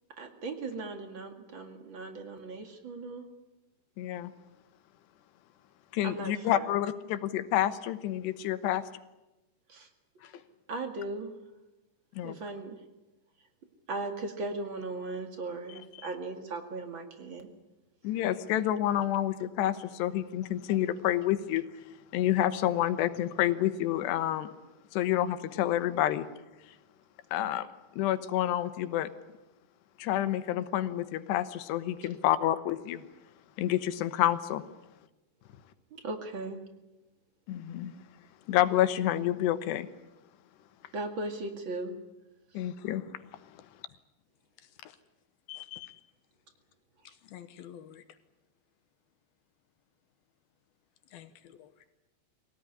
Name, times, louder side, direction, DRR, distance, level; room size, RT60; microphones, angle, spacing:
voice 1, 0.2-3.3 6.0-6.7 9.7-9.9 10.7-11.3 12.2-12.8 13.9-17.5 36.0-36.6 40.9-42.0, right 2 dB, 40° right, 6 dB, 2.1 m, -37 dB
voice 2, 4.0-4.3 5.9-8.8 12.2-12.4 18.0-21.6 22.1-24.5 24.9-26.3 27.3-27.7 28.0-29.1 30.0-33.0 33.6-34.6 37.5-37.9 38.5-39.9 42.5-43.0, left 12 dB, 90° left, 11 dB, 3.2 m, -28 dB
voice 3, 15.7-16.1 44.6-45.0 45.5-46.0 47.0-48.0 51.1-51.7, left 12 dB, 75° left, 11 dB, 2.7 m, -48 dB
23.5 x 18.0 x 9.9 m, 1.0 s
omnidirectional pair, 4.7 m